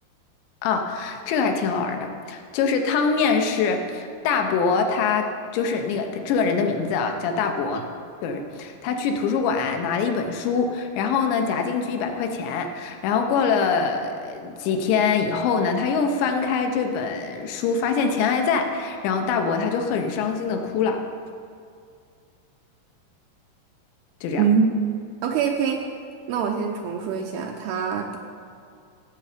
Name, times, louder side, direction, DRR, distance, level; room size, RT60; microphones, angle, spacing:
voice 1, 0.6-7.8 8.2-21.0 24.2-24.4, left 5 dB, 85° left, 4 dB, 3.2 m, -24 dB
voice 2, 24.4-24.7 25.2-25.8 26.3-28.2, right 6 dB, 80° right, 2 dB, 2.3 m, -23 dB
16.0 x 7.9 x 5.0 m, 2.3 s
omnidirectional pair, 5.1 m